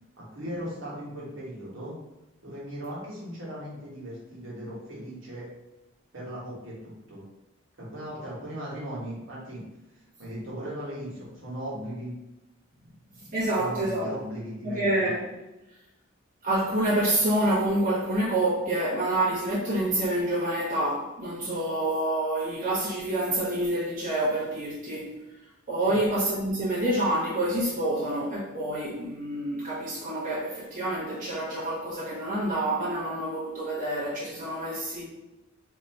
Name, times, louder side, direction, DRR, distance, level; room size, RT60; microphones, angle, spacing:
voice 1, 0.2-1.9 2.4-5.5 6.1-7.2 7.8-9.6 9.9-12.1 13.5-15.1 25.8-26.0, equal, 75° right, 1.4 m, -38 dB
voice 2, 13.2-14.1 14.6-15.2 16.4-25.2 25.7-35.0, right 1 dB, 40° right, 1.1 m, -27 dB
2.9 x 2.6 x 4.4 m
head